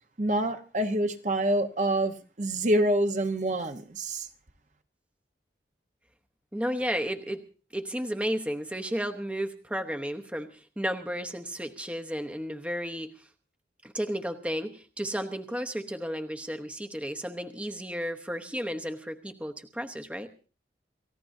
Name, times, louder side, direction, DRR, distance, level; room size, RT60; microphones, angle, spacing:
voice 1, 0.2-4.3, right 1 dB, 45° right, 1.0 m, -26 dB
voice 2, 6.5-7.4 7.7-13.3 13.8-20.3, equal, 5° right, 0.9 m, -33 dB
29.5 x 15.5 x 2.7 m
head